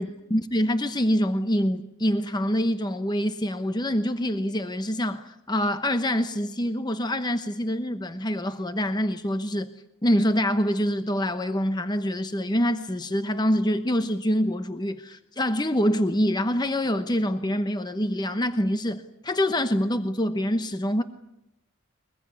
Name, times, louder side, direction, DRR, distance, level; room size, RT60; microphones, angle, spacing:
voice 1, 0.0-9.7 10.0-21.0, equal, 20° left, 1.0 m, -25 dB
23.0 x 21.0 x 9.7 m
head